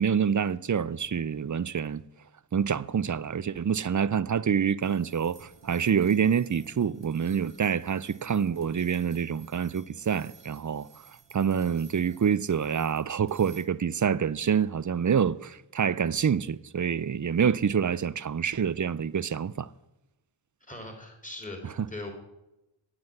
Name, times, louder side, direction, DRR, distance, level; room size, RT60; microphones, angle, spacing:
voice 1, 0.0-2.0 2.5-10.9 11.3-19.7, right 7 dB, 40° right, 0.5 m, -27 dB
sound 1, 4.8-13.7, right 6 dB, 70° right, 1.2 m, -54 dB
voice 2, 20.7-22.1, left 2 dB, 15° left, 3.5 m, -40 dB
9.6 x 7.9 x 9.0 m
wide cardioid pair, 55°, 45 cm